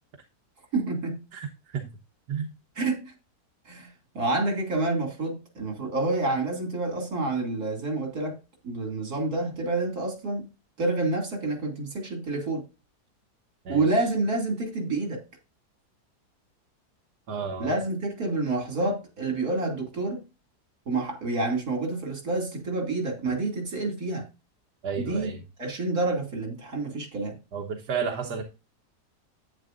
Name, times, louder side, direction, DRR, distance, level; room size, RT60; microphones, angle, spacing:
voice 1, 0.7-1.2 2.8-3.1 3.7-3.9 4.1-8.4 8.6-10.4 10.8-12.6 13.7-15.2 17.6-20.2 20.9-24.3 25.0-25.3 25.6-27.4, right 2 dB, 65° right, 3.3 m, -28 dB
voice 2, 1.3-1.9 2.3-2.5 13.7-14.0 17.3-17.8 24.8-25.4 27.5-28.4, right 6 dB, 80° right, 1.7 m, -32 dB
10.5 x 9.5 x 2.6 m
omnidirectional pair, 1.7 m